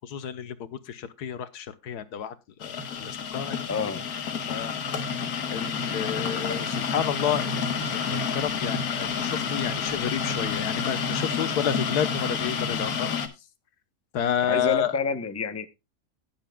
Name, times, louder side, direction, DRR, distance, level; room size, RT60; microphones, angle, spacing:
voice 1, 0.0-2.3 2.6-3.6 4.5-4.7 5.5-13.1 14.1-15.0, left 9 dB, 90° left, 1.5 m, -30 dB
sound 1, 2.6-13.3, left 6 dB, 70° left, 1.7 m, -29 dB
voice 2, 3.7-4.0 14.5-15.7, left 5 dB, 15° left, 0.6 m, -28 dB
19.0 x 7.5 x 2.3 m
omnidirectional pair, 1.6 m